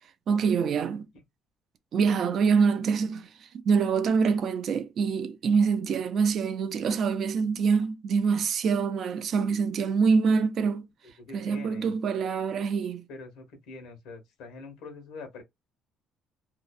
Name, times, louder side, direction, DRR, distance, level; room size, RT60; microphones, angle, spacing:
voice 1, 0.3-1.1 1.9-10.9 11.3-13.0, right 5 dB, 40° right, 0.3 m, -25 dB
voice 2, 11.2-11.9 13.1-15.4, left 3 dB, 85° left, 1.0 m, -44 dB
2.6 x 2.1 x 2.3 m
cardioid pair, 180°, 0 cm